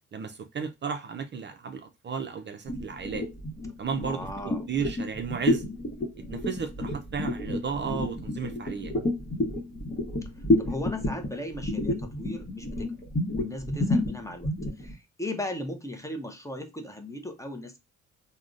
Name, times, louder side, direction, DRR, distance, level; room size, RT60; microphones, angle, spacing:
voice 1, 0.1-3.3 3.8-4.3 4.7-5.6 6.3-8.9, right 6 dB, 40° right, 0.4 m, -33 dB
sound 1, 2.7-14.9, left 1 dB, 30° left, 1.0 m, -29 dB
voice 2, 4.0-4.6 10.4-13.0 13.3-14.5 14.8-17.8, left 1 dB, 10° left, 0.6 m, -37 dB
3.6 x 2.1 x 2.4 m
cardioid pair, 90°, 30 cm